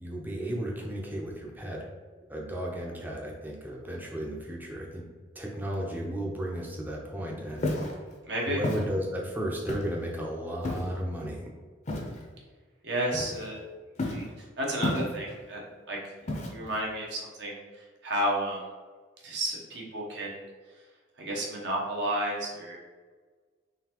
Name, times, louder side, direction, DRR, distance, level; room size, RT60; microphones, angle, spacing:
voice 1, 0.0-1.9 2.3-5.0 5.3-7.7 8.4-11.5, equal, 10° right, -2 dB, 0.5 m, -34 dB
Walk footsteps, 7.6-8.0 8.6-8.9 9.7-10.0 10.6-11.0 11.9-12.2 13.1-13.6 14.0-14.3 14.8-15.4 16.3-16.8, left 1 dB, 35° left, 0.6 m, -31 dB
voice 2, 8.3-8.6 12.8-13.6 14.0-14.2 14.6-16.0 16.5-17.6 18.0-18.6 19.2-20.4 21.2-22.8, right 1 dB, 60° right, -2 dB, 0.9 m, -31 dB
3.8 x 3.3 x 2.9 m, 1.4 s
head